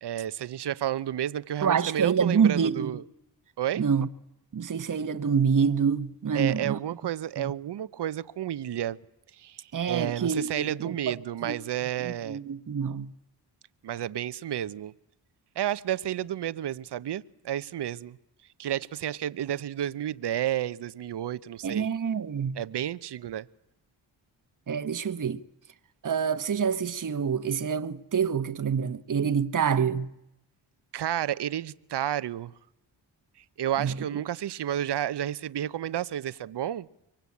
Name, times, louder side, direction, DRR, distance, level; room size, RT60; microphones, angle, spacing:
voice 1, 0.0-3.0 3.6-3.8 6.3-9.0 9.4-12.4 13.8-14.9 15.6-18.2 18.6-21.9 22.5-23.5 30.9-32.5 33.4-36.9, right 11 dB, 60° right, 0.9 m, -31 dB
voice 2, 1.6-2.9 3.7-4.1 4.5-6.8 7.4-7.5 9.7-11.1 11.4-11.5 12.0-13.1 21.6-22.6 24.7-25.4 26.0-30.1 33.8-34.0, right 6 dB, 45° right, 1.2 m, -26 dB
25.0 x 23.0 x 8.5 m
cardioid pair, 55°, 45 cm